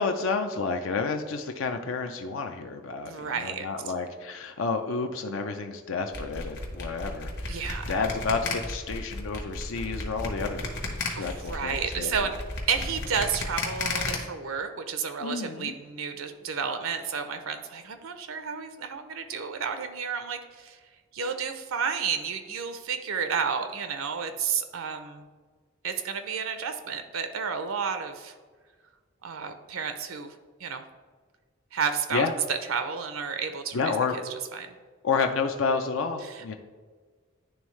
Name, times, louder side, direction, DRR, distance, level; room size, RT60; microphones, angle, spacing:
voice 1, 0.0-12.1 15.2-15.7 32.1-32.3 33.7-34.2 35.0-36.5, left 4 dB, 75° left, 5 dB, 0.5 m, -30 dB
voice 2, 3.1-3.7 7.5-8.0 11.2-12.4 12.7-20.8 21.1-25.3 25.8-28.3 29.2-30.8 31.7-33.9 34.5-34.7 36.3-36.5, right 6 dB, 85° right, 8 dB, 0.6 m, -31 dB
sound 1, 6.1-14.2, left 3 dB, 55° left, 1.0 m, -33 dB
10.5 x 3.5 x 3.2 m, 1.5 s
head